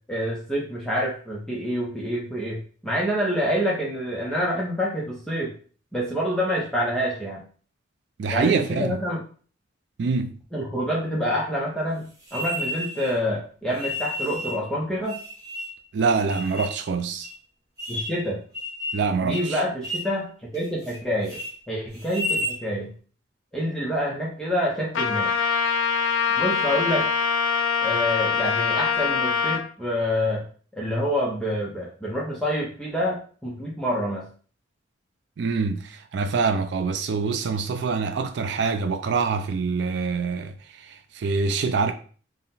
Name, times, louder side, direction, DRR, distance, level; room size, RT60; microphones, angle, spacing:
voice 1, 0.1-5.5 5.9-7.4 8.3-9.2 10.5-15.2 17.9-18.4 19.2-21.4 21.7-22.9 23.5-25.3 26.4-27.1 27.8-30.4 30.7-34.3, equal, 5° left, 0.6 m, -27 dB
voice 2, 8.2-9.0 10.0-10.4 15.9-17.3 18.9-19.6 35.4-40.6 40.8-41.9, right 4 dB, 60° right, 0.3 m, -25 dB
sound 1, 12.3-13.1 13.8-14.6 15.1-15.8 16.3-16.8 17.2-17.3 17.8-18.2 18.5-19.1 19.3-19.5 19.8-20.1 20.5-21.0 21.2-21.5 22.0-22.6, left 1 dB, 20° right, 1.0 m, -31 dB
Trumpet, 24.9-29.6, left 6 dB, 90° left, 0.5 m, -23 dB
3.8 x 2.1 x 4.0 m
head